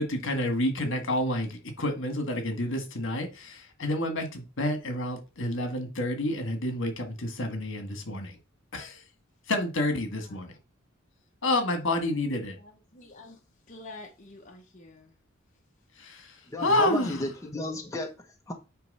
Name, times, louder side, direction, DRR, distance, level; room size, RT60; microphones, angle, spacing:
voice 1, 0.0-8.4 8.7-9.0 9.5-10.5 11.4-12.6 16.0-17.2, left 1 dB, 65° left, 1.8 m, -29 dB
voice 2, 10.2-10.6 12.5-13.4 13.7-15.2 16.0-16.1 16.4-16.5, left 2 dB, 40° left, 1.0 m, -49 dB
voice 3, 16.5-18.5, left 1 dB, 15° left, 0.8 m, -34 dB
9.0 x 3.1 x 5.4 m
head